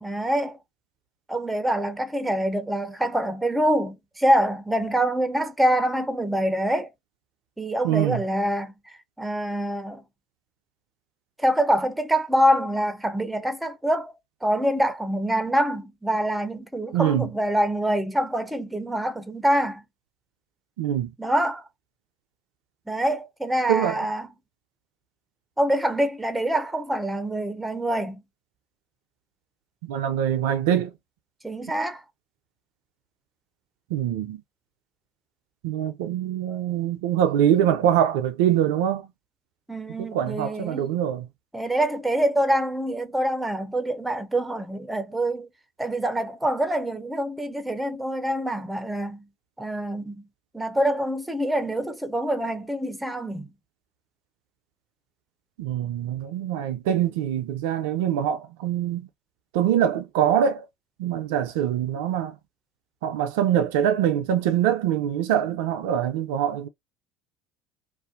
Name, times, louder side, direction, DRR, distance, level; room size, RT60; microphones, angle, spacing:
voice 1, 0.0-0.6 1.3-6.9 7.6-8.7 9.2-10.0 11.4-14.1 14.4-19.8 21.2-21.6 22.9-24.3 25.6-28.2 31.4-32.0 39.7-40.9 41.5-45.5 45.8-49.2 49.6-50.3 50.5-53.5, right 1 dB, 10° right, 0.5 m, -25 dB
voice 2, 7.8-8.2 16.9-17.3 20.8-21.1 23.7-24.0 29.8-30.9 33.9-34.4 35.6-39.0 40.0-41.3 55.6-59.1 59.5-60.6 61.0-62.4 63.0-66.7, right 10 dB, 70° right, 0.3 m, -24 dB
2.5 x 2.1 x 2.4 m
figure-of-eight pair, 65°, 0 cm